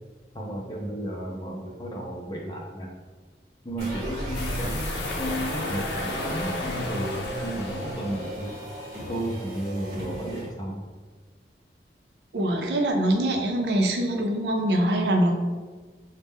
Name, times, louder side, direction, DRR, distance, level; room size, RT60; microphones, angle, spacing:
voice 1, 0.3-3.0 3.6-8.6 9.1-10.8, right 1 dB, 25° left, -2 dB, 0.5 m, -33 dB
sound 1, 3.8-10.5, equal, 40° right, 1.0 m, -35 dB
sound 2, 4.3-8.8, left 2 dB, 80° left, 0.6 m, -35 dB
voice 2, 12.3-15.3, right 1 dB, 75° right, 3 dB, 0.6 m, -23 dB
5.1 x 2.1 x 3.5 m, 1.4 s
head